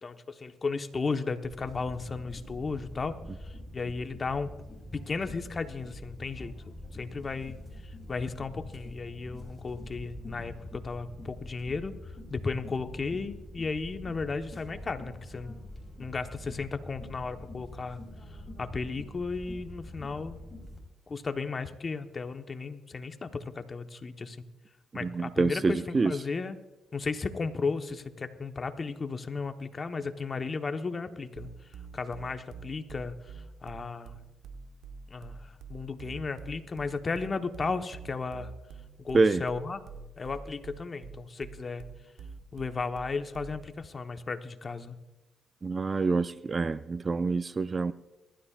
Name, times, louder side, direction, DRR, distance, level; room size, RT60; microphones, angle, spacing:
voice 1, 0.0-4.5 4.9-6.5 6.9-7.6 7.8-15.5 16.0-18.0 18.3-20.4 21.1-24.4 24.9-26.6 26.9-31.7 31.9-34.2 35.1-38.5 39.0-39.8 40.2-41.8 42.5-45.0, left 4 dB, 40° left, 7 dB, 1.1 m, -35 dB
sound 1, 1.4-20.8, left 1 dB, 15° left, 5.5 m, -45 dB
voice 2, 25.0-26.1 39.1-39.4 45.6-47.9, right 4 dB, 35° right, 14 dB, 0.4 m, -26 dB
sound 2, 31.4-43.7, right 5 dB, 80° right, 1.3 m, -46 dB
23.0 x 13.0 x 2.5 m, 1.1 s
cardioid pair, 70°, 0 cm